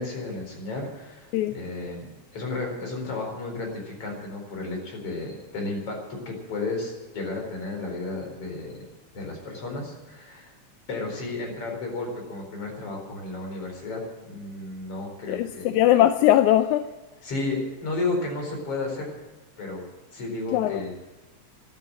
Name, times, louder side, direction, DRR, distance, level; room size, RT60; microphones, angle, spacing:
voice 1, 0.0-8.8 9.1-10.5 10.9-15.8 17.2-19.1 19.6-19.8 20.1-20.9, left 3 dB, 50° left, 1 dB, 5.3 m, -33 dB
voice 2, 15.3-16.9 20.5-20.8, left 13 dB, 85° left, 10 dB, 2.0 m, -20 dB
12.5 x 12.0 x 8.7 m, 1.2 s
omnidirectional pair, 3.4 m